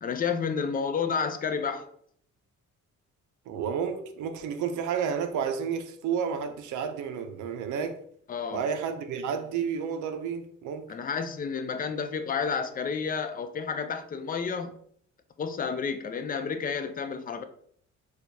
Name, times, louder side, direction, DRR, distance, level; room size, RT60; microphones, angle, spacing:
voice 1, 0.0-1.9 8.3-8.6 10.9-14.8 15.4-17.4, left 6 dB, 30° left, 0.4 m, -30 dB
voice 2, 3.5-8.0 8.5-10.9, right 7 dB, 75° right, 0.5 m, -31 dB
4.4 x 2.4 x 2.6 m
cardioid pair, 90°, 30 cm